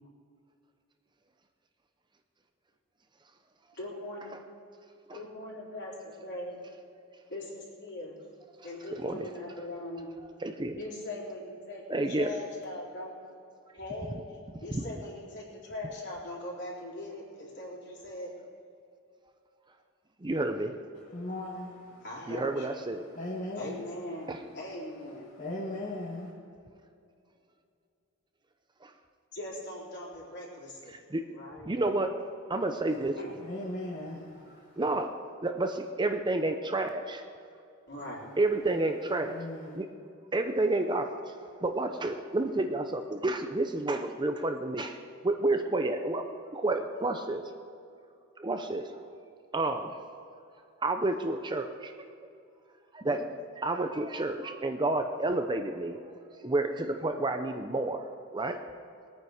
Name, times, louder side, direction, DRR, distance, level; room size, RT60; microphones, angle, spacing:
voice 1, 3.8-4.3 5.1-5.9 6.2-6.6 7.3-8.1 8.6-10.1 10.8-13.1 13.7-14.2 14.6-18.3 22.0-22.7 23.6-25.3 29.3-31.0 31.3-31.7 33.2-33.4 37.9-38.3, left 1 dB, 55° left, -4 dB, 4.0 m, -40 dB
voice 2, 10.4-10.8 11.9-12.3 14.7-14.8 20.2-20.7 22.3-23.0 24.3-24.4 30.9-31.2 31.7-32.1 32.5-33.1 34.8-35.1 35.4-37.2 38.4-39.4 39.8-39.9 40.3-41.1 41.6-44.9 45.2-46.2 46.5-47.4 48.4-48.8 49.5-49.9 50.8-51.9 52.9-56.0 56.4-58.0 58.3-58.6, right 2 dB, 20° right, 6 dB, 0.6 m, -30 dB
voice 3, 20.9-22.0 23.1-23.8 25.3-26.3 33.4-34.8 39.2-39.8, left 1 dB, 40° left, -5 dB, 1.7 m, -38 dB
21.5 x 9.3 x 4.9 m, 2.5 s
head